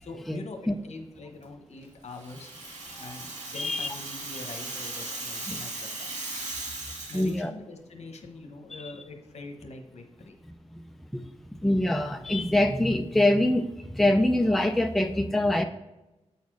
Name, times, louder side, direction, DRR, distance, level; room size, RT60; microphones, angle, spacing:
voice 1, 0.0-2.5 3.0-6.1 7.1-10.4 10.6-10.7, left 3 dB, 65° left, 5 dB, 1.0 m, -43 dB
Rattle (instrument), 2.1-7.3, right 2 dB, 85° right, 1.9 m, -37 dB
voice 2, 3.6-3.9 7.1-7.5 11.1-11.2 11.6-15.6, left 1 dB, ahead, 6 dB, 0.4 m, -24 dB
8.2 x 4.3 x 4.7 m, 1.0 s
wide cardioid pair, 110°, 12 cm